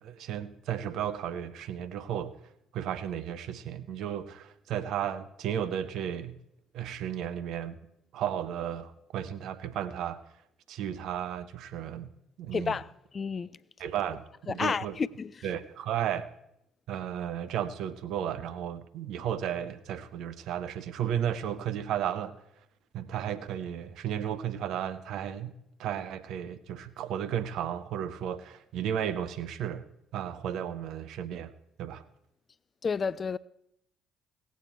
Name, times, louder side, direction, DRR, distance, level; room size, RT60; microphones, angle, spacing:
voice 1, 0.0-2.3 2.7-6.4 6.7-7.8 8.1-10.2 10.7-12.1 12.4-12.8 13.8-15.0 15.4-16.3 16.9-22.4 22.9-25.5 25.8-29.8 30.1-31.5 31.8-32.0, right 9 dB, 60° right, 0.7 m, -34 dB
voice 2, 12.5-12.9 13.1-13.6 14.5-15.3 32.8-33.4, left 5 dB, 35° left, 0.3 m, -30 dB
17.5 x 8.3 x 4.4 m
figure-of-eight pair, 50°, 0 cm